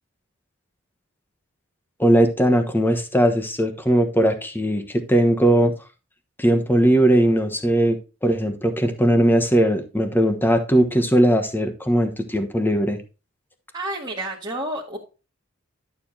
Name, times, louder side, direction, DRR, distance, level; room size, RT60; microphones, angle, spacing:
voice 1, 2.0-5.7 6.4-13.0, right 1 dB, 10° left, 7 dB, 1.2 m, -19 dB
voice 2, 13.7-15.0, right 1 dB, 20° right, -5 dB, 1.6 m, -30 dB
11.5 x 6.9 x 2.8 m, 0.31 s
head